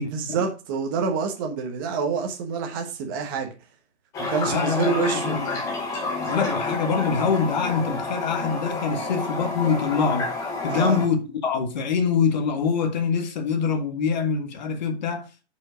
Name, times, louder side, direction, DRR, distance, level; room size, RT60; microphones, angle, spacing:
voice 1, 0.0-3.5 4.2-5.4 10.7-11.0, right 5 dB, 20° right, 1.2 m, -27 dB
Toilet flush, 4.1-11.1, left 3 dB, 10° left, 1.0 m, -29 dB
voice 2, 4.5-5.6 6.2-10.3 10.6-15.4, left 5 dB, 40° left, 1.5 m, -25 dB
7.4 x 5.4 x 5.0 m
hypercardioid pair, 170°, 35 cm